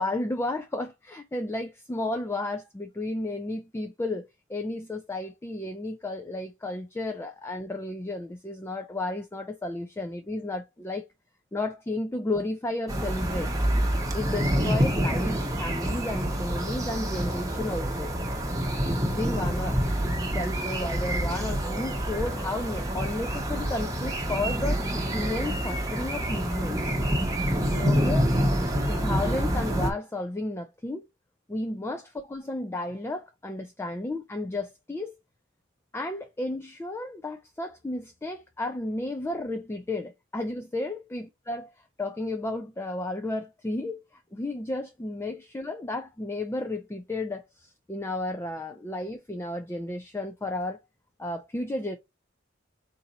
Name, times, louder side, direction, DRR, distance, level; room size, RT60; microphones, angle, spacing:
voice 1, 0.0-11.0 11.5-13.5 14.1-18.1 18.8-24.8 25.1-26.9 27.7-28.2 28.9-31.1 31.5-35.1 35.9-41.7 42.0-50.8 51.2-52.0, left 2 dB, 15° left, 0.3 m, -33 dB
sound 1, 12.9-29.9, equal, 15° right, 0.9 m, -27 dB
4.0 x 2.6 x 3.9 m
head